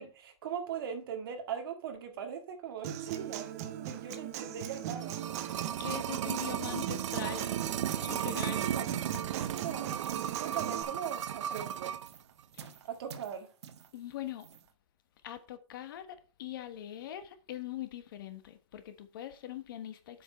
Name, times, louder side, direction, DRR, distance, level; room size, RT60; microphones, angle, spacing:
voice 1, 0.0-3.5 3.9-5.3 8.5-8.9 9.5-12.0 12.8-13.5, right 8 dB, 50° right, 2.1 m, -40 dB
Human voice / Acoustic guitar, 2.8-10.8, right 11 dB, 30° right, 0.8 m, -39 dB
sound 1, 4.7-12.1 12.4-12.5, right 10 dB, 85° right, 0.6 m, -35 dB
voice 2, 5.8-7.6 8.0-8.7 12.5-12.7 13.9-14.5 15.2-20.2, left 12 dB, 45° left, 1.3 m, -42 dB
sound 2, 7.7-14.7, right 7 dB, 65° right, 1.3 m, -53 dB
7.9 x 6.5 x 4.5 m
supercardioid pair, 180°, 15 cm